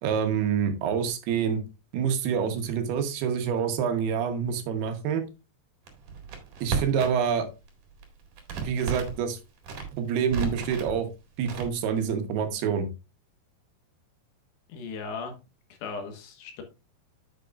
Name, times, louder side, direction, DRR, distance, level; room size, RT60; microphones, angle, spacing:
voice 1, 0.0-1.6 1.9-5.2 6.6-7.5 8.6-9.4 9.9-11.1 11.4-12.9, right 7 dB, 75° right, 7 dB, 3.0 m, -27 dB
Crackle, 5.9-7.3 7.6-9.2 9.6-10.9 11.4-12.0, right 6 dB, 55° right, 3.0 m, -33 dB
voice 2, 14.7-15.4 15.8-16.6, left 4 dB, 80° left, 4 dB, 3.4 m, -37 dB
9.1 x 8.1 x 2.4 m, 0.27 s
omnidirectional pair, 4.9 m